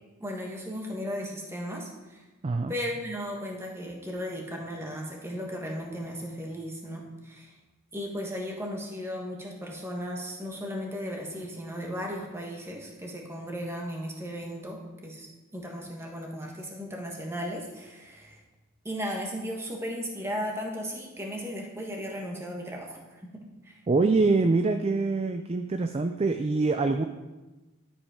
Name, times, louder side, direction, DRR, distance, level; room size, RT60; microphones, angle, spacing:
voice 1, 0.2-2.2 2.7-7.5 7.9-18.4 18.8-23.8, equal, 10° right, 0 dB, 1.3 m, -36 dB
voice 2, 2.4-2.7 23.9-27.0, right 3 dB, 30° right, 7 dB, 0.3 m, -24 dB
11.5 x 5.3 x 4.9 m, 1.1 s
head